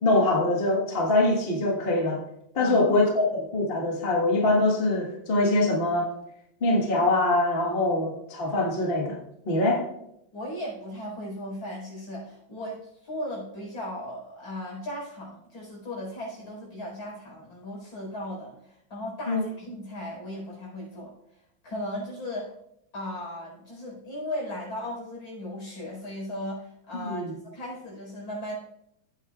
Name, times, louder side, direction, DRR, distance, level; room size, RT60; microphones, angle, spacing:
voice 1, 0.0-2.2 2.5-6.1 6.6-9.2 9.4-9.8 19.3-19.4 27.0-27.3, left 2 dB, 30° left, -1 dB, 1.5 m, -23 dB
voice 2, 2.6-2.9 10.3-21.1 21.6-22.5 22.9-28.5, left 1 dB, 80° left, -3 dB, 5.4 m, -37 dB
14.5 x 8.7 x 2.4 m, 0.79 s
omnidirectional pair, 2.2 m